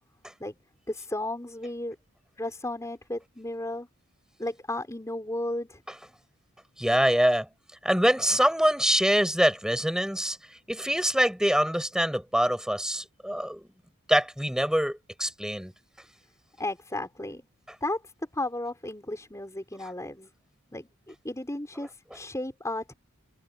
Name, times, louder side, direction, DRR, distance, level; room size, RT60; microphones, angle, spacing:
voice 1, 0.9-2.0 2.4-3.9 4.4-5.8 16.6-17.4 17.8-18.0 18.3-20.3 20.7-22.9, left 1 dB, 15° left, 4.5 m, -34 dB
voice 2, 6.8-7.5 7.8-10.4 10.7-13.7 14.1-15.7, equal, 5° right, 7.3 m, -24 dB
head